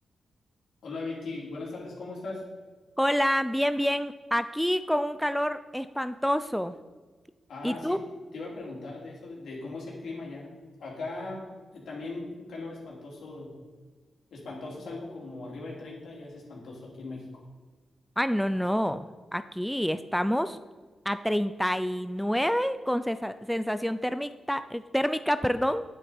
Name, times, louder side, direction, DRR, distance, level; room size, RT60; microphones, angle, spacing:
voice 1, 0.8-2.4 7.5-8.0 8.3-10.5 10.8-11.4 11.7-13.5 14.3-17.4, left 3 dB, 80° left, -4 dB, 3.1 m, -39 dB
voice 2, 3.0-6.7 7.6-8.0 18.2-20.6 21.1-25.8, equal, ahead, 11 dB, 0.4 m, -28 dB
9.4 x 8.3 x 4.3 m, 1.3 s
cardioid pair, 80°, 0 cm